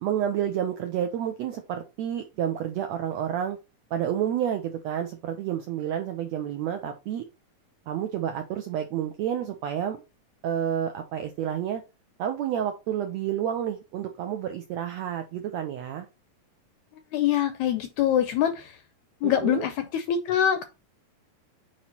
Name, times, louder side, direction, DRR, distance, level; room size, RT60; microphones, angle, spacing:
voice 1, 0.0-3.6 3.9-7.2 7.9-10.0 10.4-11.8 12.2-16.1 19.2-19.6, right 10 dB, 80° right, 1.5 m, -29 dB
voice 2, 17.1-18.7 19.2-20.6, left 10 dB, 80° left, 1.7 m, -24 dB
8.7 x 3.1 x 4.2 m
omnidirectional pair, 3.8 m